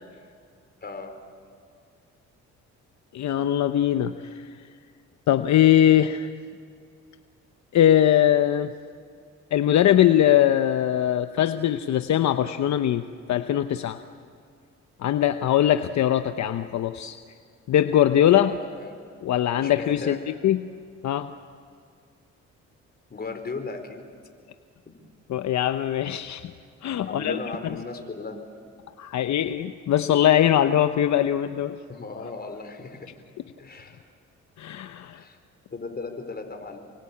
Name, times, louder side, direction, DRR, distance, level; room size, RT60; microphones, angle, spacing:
voice 1, 0.8-1.1 18.3-19.0 19.5-20.2 23.1-24.0 24.8-24.9 27.0-28.4 31.9-33.1 33.6-34.0 35.1-35.4 35.7-36.9, left 3 dB, 30° left, 5 dB, 4.7 m, -36 dB
voice 2, 3.1-4.5 5.3-6.3 7.7-8.7 9.5-14.0 15.0-17.2 17.7-18.5 19.2-20.2 20.4-20.6 21.0-21.3 25.3-26.4 26.8-27.4 29.0-31.8 34.6-35.2, left 11 dB, 65° left, 9 dB, 0.9 m, -21 dB
28.0 x 24.0 x 8.6 m, 2.2 s
cardioid pair, 90°, 30 cm